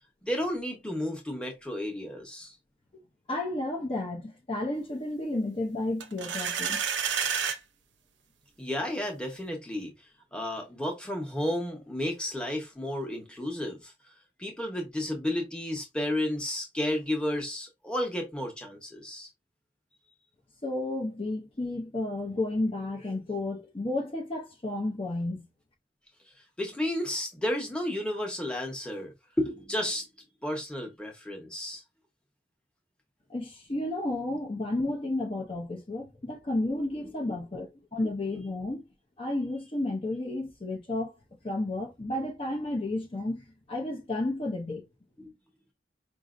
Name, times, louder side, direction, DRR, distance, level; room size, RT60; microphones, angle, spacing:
voice 1, 0.2-2.5 8.6-9.9 10.3-13.9 14.4-19.3 26.6-30.1 30.4-31.8 45.2-45.3, left 1 dB, 5° left, 0.9 m, -32 dB
voice 2, 3.3-6.8 20.6-25.5 33.3-38.8 39.2-41.1 41.4-44.8, left 2 dB, 30° left, 0.6 m, -32 dB
sound 1, 6.0-7.6, right 7 dB, 80° right, 0.6 m, -29 dB
5.0 x 2.6 x 2.5 m
head